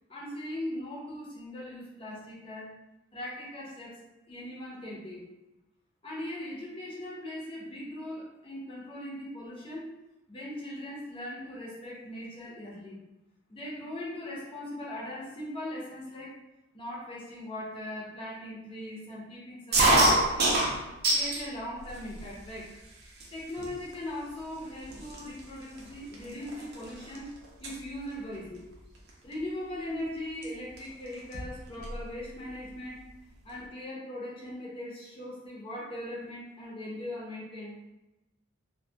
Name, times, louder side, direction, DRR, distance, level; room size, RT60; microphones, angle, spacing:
voice 1, 0.1-2.7 3.1-5.2 6.0-9.9 10.3-13.0 13.5-16.4 16.7-20.7 21.1-22.8 23.3-27.3 27.6-28.6 29.2-33.1 33.4-37.9, left 1 dB, 25° left, -4 dB, 0.6 m, -40 dB
sound 1, 19.7-21.5 21.9-22.5 23.2-23.3 23.6-23.9 24.6-24.7 24.9-27.2 27.4-27.8 29.1-29.3 30.4-30.5 30.8-30.9 31.1-32.0, right 1 dB, 50° right, 0.5 m, -26 dB
2.2 x 2.2 x 2.7 m, 0.98 s
head